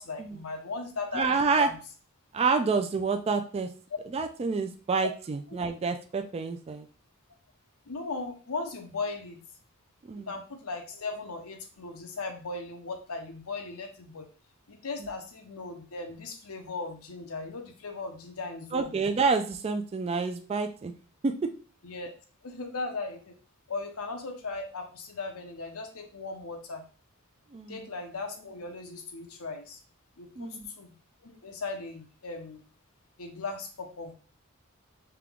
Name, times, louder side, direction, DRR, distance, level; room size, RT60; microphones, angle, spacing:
voice 1, 0.0-1.8 5.0-5.1 5.5-5.6 7.9-9.4 10.2-14.3 14.7-19.0 21.8-22.1 22.4-23.4 23.7-26.8 27.7-29.8 30.2-30.9 31.2-32.6 33.2-34.1, left 3 dB, 90° left, 4 dB, 0.8 m, -37 dB
voice 2, 1.1-1.7 2.3-3.7 4.1-6.9 10.1-10.3 18.7-20.9 21.2-21.5 27.5-27.8 30.4-30.7, right 4 dB, 30° right, 6 dB, 0.3 m, -28 dB
3.5 x 2.9 x 3.6 m, 0.38 s
head